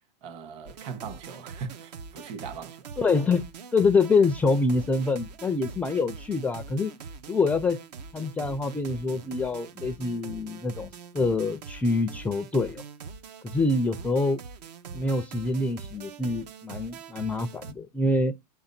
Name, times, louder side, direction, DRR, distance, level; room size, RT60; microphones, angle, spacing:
voice 1, 0.2-2.8, right 6 dB, 50° right, 1.9 m, -39 dB
sound 1, 0.7-17.7, right 5 dB, 80° right, 1.2 m, -43 dB
voice 2, 3.0-6.9 7.3-7.8 8.1-12.8 13.4-14.4 14.9-18.3, left 3 dB, 5° left, 0.4 m, -26 dB
8.4 x 3.8 x 5.8 m
supercardioid pair, 145°, 21 cm